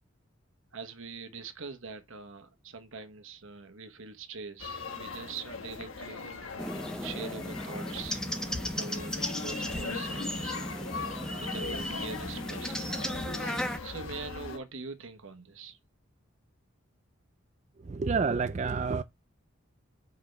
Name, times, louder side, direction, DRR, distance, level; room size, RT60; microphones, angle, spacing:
voice 1, 0.7-6.4 7.0-12.7 13.8-15.8, right 4 dB, 80° right, 1.2 m, -43 dB
sound 1, 4.6-14.6, left 4 dB, 80° left, 1.2 m, -40 dB
sound 2, 6.6-13.8, equal, 5° left, 0.6 m, -36 dB
voice 2, 17.8-19.0, right 4 dB, 35° right, 0.3 m, -29 dB
5.4 x 5.4 x 4.5 m
head